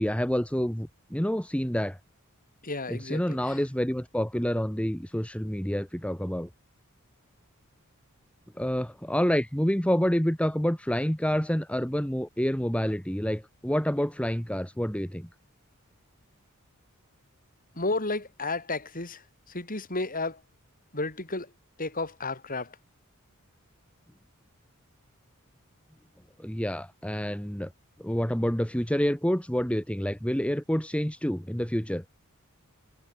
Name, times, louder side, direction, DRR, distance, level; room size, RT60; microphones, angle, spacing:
voice 1, 0.0-2.0 2.9-6.5 8.6-15.3 26.4-27.7 28.0-32.0, equal, 5° left, 2.2 m, -28 dB
voice 2, 2.6-3.6 17.8-19.2 19.5-20.4 20.9-21.5 21.8-22.8, left 2 dB, 40° left, 6.9 m, -32 dB
head